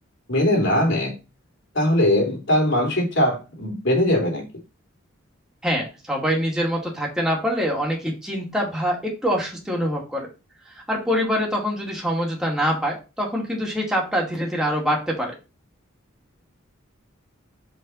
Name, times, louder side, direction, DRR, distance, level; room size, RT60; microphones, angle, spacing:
voice 1, 0.3-1.1 1.7-4.4, left 1 dB, 65° left, 0 dB, 3.1 m, -20 dB
voice 2, 5.6-10.3 10.7-15.3, equal, 5° right, -2 dB, 2.3 m, -24 dB
5.7 x 5.5 x 5.5 m, 0.29 s
head